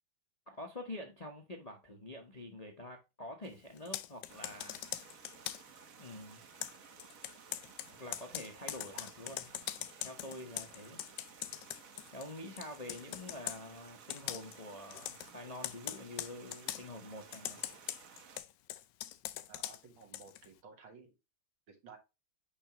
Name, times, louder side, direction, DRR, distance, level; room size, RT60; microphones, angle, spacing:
voice 1, 0.5-4.8 6.0-6.4 8.0-9.5 10.0-11.0 12.1-17.6, left 1 dB, 40° left, 0.5 m, -47 dB
Computer keyboard, 3.8-5.8 6.6-12.3 12.6-13.6 14.1-14.6 14.9-15.3 15.6-16.8 17.3-20.5, left 13 dB, 75° left, 1.1 m, -42 dB
sound 1, 4.3-18.4, right 6 dB, 55° right, 1.1 m, -56 dB
voice 2, 19.5-21.1 21.7-22.0, right 5 dB, 80° right, 2.3 m, -55 dB
9.8 x 3.4 x 2.8 m
omnidirectional pair, 2.2 m